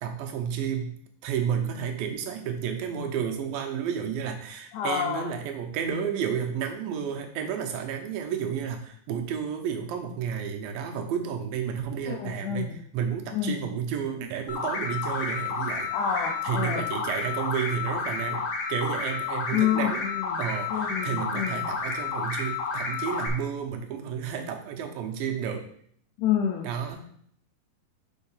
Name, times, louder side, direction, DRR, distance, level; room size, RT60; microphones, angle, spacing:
voice 1, 0.0-15.9 16.4-20.0 20.4-25.7 26.6-27.1, right 7 dB, 80° right, 4 dB, 2.5 m, -31 dB
voice 2, 4.7-5.3 12.0-12.8 13.3-13.6 15.9-16.9 19.5-20.4 20.7-21.7 26.2-26.7, left 9 dB, 80° left, 1 dB, 1.8 m, -28 dB
sound 1, 14.5-23.3, left 5 dB, 55° left, 1.5 m, -31 dB
5.4 x 5.1 x 5.5 m, 0.63 s
omnidirectional pair, 4.2 m